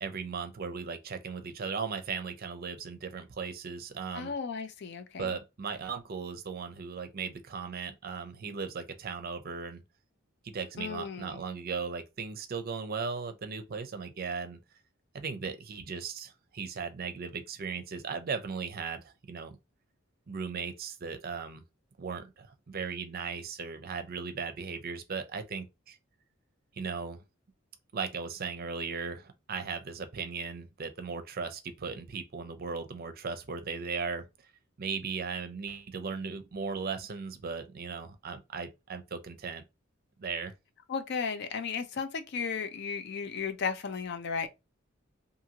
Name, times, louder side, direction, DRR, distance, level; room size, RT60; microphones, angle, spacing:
voice 1, 0.0-4.3 5.2-9.8 10.4-14.6 15.1-19.6 20.3-21.6 22.0-26.0 26.8-27.2 27.9-34.3 34.8-39.6 40.2-40.5, right 5 dB, 50° right, 0.5 m, -37 dB
voice 2, 4.1-5.4 10.8-11.4 40.9-44.5, left 5 dB, 55° left, 0.5 m, -35 dB
2.6 x 2.6 x 2.8 m
head